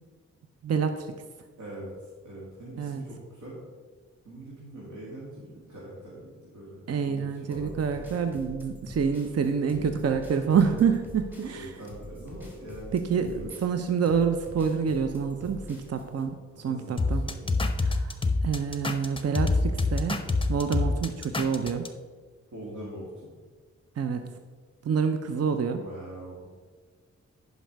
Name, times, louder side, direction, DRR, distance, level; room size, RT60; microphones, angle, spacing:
voice 1, 0.6-1.1 2.8-3.0 6.9-11.7 12.9-17.2 17.8-18.2 18.4-20.2 20.5-21.9 24.0-24.2 24.8-25.8, right 6 dB, 55° right, 7 dB, 0.7 m, -27 dB
voice 2, 1.6-3.6 4.2-7.8 11.4-13.5 16.5-17.6 22.5-23.3 25.7-26.5, right 1 dB, 90° right, -7 dB, 2.3 m, -43 dB
sound 1, 7.5-16.2, equal, 5° right, 2.9 m, -45 dB
sound 2, 17.0-21.9, left 3 dB, 20° left, 0.8 m, -26 dB
10.5 x 5.4 x 4.6 m, 1.5 s
cardioid pair, 70°, 29 cm